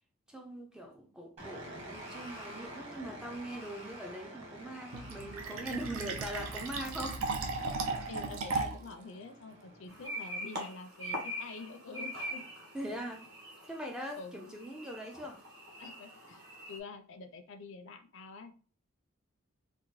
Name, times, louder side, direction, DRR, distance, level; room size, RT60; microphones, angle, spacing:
voice 1, 0.3-7.2 12.7-13.3 13.7-15.4, right 1 dB, 5° right, 0.3 m, -41 dB
sound 1, 1.4-10.0, right 1 dB, 30° right, 1.1 m, -49 dB
Fill (with liquid), 4.9-8.9, right 3 dB, 75° right, 0.5 m, -36 dB
voice 2, 7.9-12.4 14.2-14.5 15.8-16.4 16.7-18.5, left 3 dB, 60° left, 0.5 m, -47 dB
sound 2, 9.9-16.8, equal, 50° right, 1.1 m, -43 dB
3.8 x 2.1 x 3.0 m
head